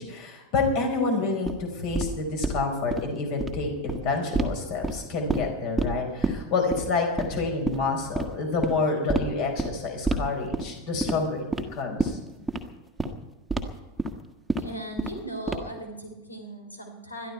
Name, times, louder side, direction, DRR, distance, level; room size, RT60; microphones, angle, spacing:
voice 1, 0.0-11.4 11.7-12.2, left 3 dB, 45° left, 3 dB, 5.1 m, -28 dB
sound 1, 1.4-1.5 1.9-2.1 2.4-2.6 2.9-3.0 3.3-3.5 3.9-4.0 4.3-4.5 4.8-5.5 5.8-5.9 6.2-6.3 6.7-6.8 7.2-7.4 7.7-7.8 8.1-8.3 8.6-8.7 9.1-9.2 9.6-9.7 10.1-10.2 10.5-10.7 11.0-11.2 11.5-11.6 12.0-12.1 12.5-12.6 13.0-13.1 13.5-13.6 14.0-14.1 14.5-14.6 15.0-15.2 15.5-15.8, right 2 dB, 5° right, 1.6 m, -27 dB
voice 2, 14.5-17.3, right 1 dB, 80° left, 4 dB, 3.8 m, -38 dB
22.0 x 13.0 x 4.6 m, 1.1 s
figure-of-eight pair, 90°, 0 cm